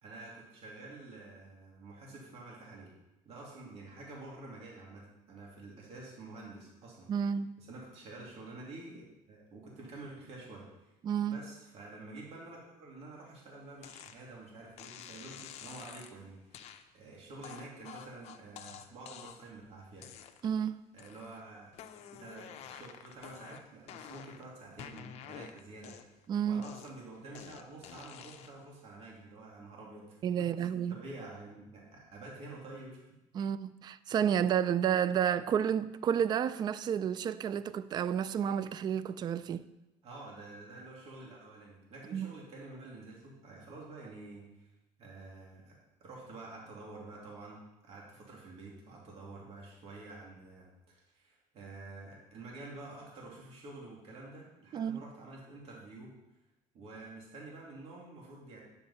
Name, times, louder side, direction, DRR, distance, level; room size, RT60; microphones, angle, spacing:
voice 1, 0.0-2.9 3.2-7.1 7.6-10.9 11.3-20.1 20.9-21.7 22.1-25.9 26.4-33.5 40.0-44.7 45.0-56.1 56.7-58.6, right 2 dB, 50° right, 2.7 m, -49 dB
voice 2, 7.1-7.6 11.0-11.4 20.4-20.7 26.3-26.6 30.2-31.0 33.3-39.7 42.1-42.3 54.7-55.0, right 8 dB, 35° right, 0.4 m, -31 dB
sound 1, 13.8-14.2 14.8-16.1 16.5-16.8 17.4-19.5 20.0-20.6 21.0-21.4 21.7-24.4 24.8-26.2 26.6-28.6, left 9 dB, 55° left, 0.7 m, -49 dB
10.0 x 7.8 x 4.2 m
cardioid pair, 130°, 13 cm